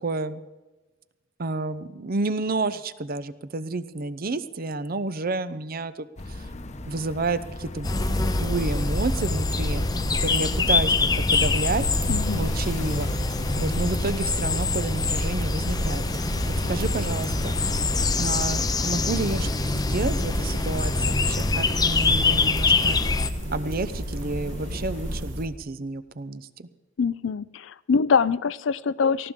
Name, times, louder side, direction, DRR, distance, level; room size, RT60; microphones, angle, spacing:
voice 1, 0.0-0.4 1.4-6.1 6.9-8.0 8.3-9.8 10.2-11.9 12.3-13.1 13.6-16.0 16.7-17.7 18.2-23.0 23.5-26.7, right 3 dB, 50° right, 14 dB, 0.7 m, -30 dB
sound 1, 6.2-25.2, left 1 dB, 35° left, 0.9 m, -37 dB
sound 2, 7.8-23.3, left 3 dB, 20° left, 0.6 m, -25 dB
sound 3, 7.9-25.5, equal, 70° right, 1.6 m, -32 dB
voice 2, 12.1-12.5 27.0-29.3, left 5 dB, 70° left, 19 dB, 0.4 m, -24 dB
19.0 x 15.0 x 3.7 m, 1.2 s
head